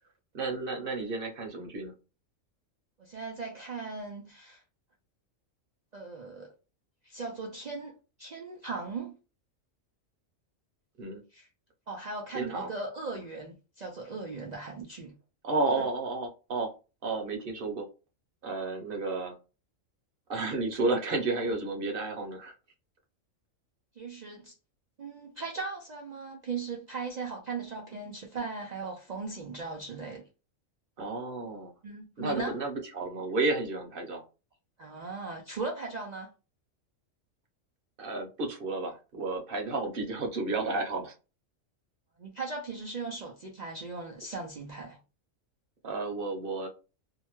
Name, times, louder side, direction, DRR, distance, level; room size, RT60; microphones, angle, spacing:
voice 1, 0.3-1.9 11.0-11.2 12.3-12.7 15.4-16.7 17.0-17.9 18.4-19.3 20.3-22.5 31.0-31.7 32.2-34.2 38.0-41.1 45.8-46.7, right 3 dB, 50° right, 0.9 m, -32 dB
voice 2, 3.0-4.6 5.9-6.5 7.0-9.2 11.3-11.5 11.9-15.1 15.8-15.9 24.0-24.5 25.0-30.3 31.8-32.5 34.8-36.3 42.2-45.0, right 4 dB, 65° right, 0.4 m, -38 dB
2.7 x 2.1 x 3.0 m
omnidirectional pair, 1.3 m